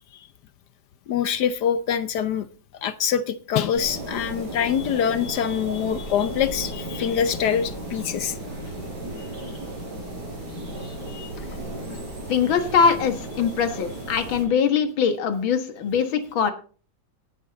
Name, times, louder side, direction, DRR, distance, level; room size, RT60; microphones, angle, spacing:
voice 1, 1.1-2.5 2.8-8.4 9.2-9.3 10.8-11.3, left 8 dB, 65° left, 13 dB, 1.2 m, -25 dB
sound 1, 3.7-14.4, right 1 dB, 55° right, 5.8 m, -35 dB
voice 2, 12.3-16.5, left 6 dB, 80° left, 8 dB, 2.2 m, -22 dB
18.5 x 8.1 x 4.0 m, 0.39 s
omnidirectional pair, 2.1 m